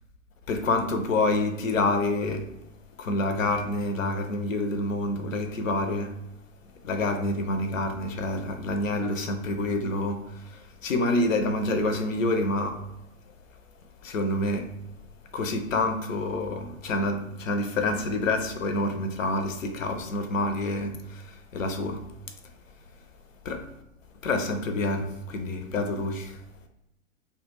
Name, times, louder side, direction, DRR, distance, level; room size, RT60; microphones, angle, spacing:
voice 1, 0.5-2.5 3.0-6.1 6.8-12.8 14.0-14.7 15.3-22.0 23.4-23.6 24.2-26.4, left 2 dB, 70° left, 6 dB, 0.5 m, -27 dB
2.2 x 2.1 x 3.2 m, 0.85 s
figure-of-eight pair, 110°, 40 cm